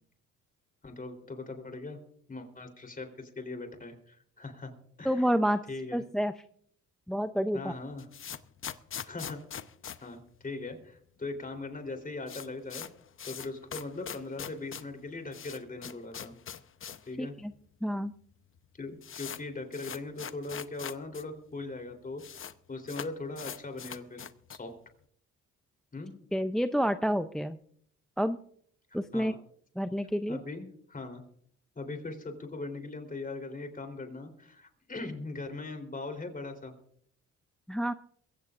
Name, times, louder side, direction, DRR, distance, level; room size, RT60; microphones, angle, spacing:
voice 1, 0.8-2.0 2.3-4.7 5.0-5.2 5.7-6.0 7.5-8.0 9.1-9.4 10.0-12.9 13.3-16.3 17.1-17.3 18.8-22.2 22.7-24.2 24.5-24.7 25.9-26.1 29.1-29.4 30.3-31.2 31.8-36.7, left 3 dB, 30° left, 6 dB, 3.6 m, -40 dB
voice 2, 5.0-5.6 5.9-6.3 7.1-7.7 17.2-17.5 17.8-18.1 26.3-27.6 28.2-28.4 28.9-29.3 29.8-30.4 37.7-37.9, equal, ahead, 10 dB, 0.5 m, -29 dB
sound 1, 7.7-11.0 11.2-11.3 11.6-11.7 12.0-17.1 17.4-17.5 18.2-18.3 18.6-21.2 21.5-21.6 21.8-22.5 22.9-24.7, left 8 dB, 45° left, 0.9 m, -42 dB
22.5 x 16.0 x 2.5 m, 0.64 s
cardioid pair, 90°, 30 cm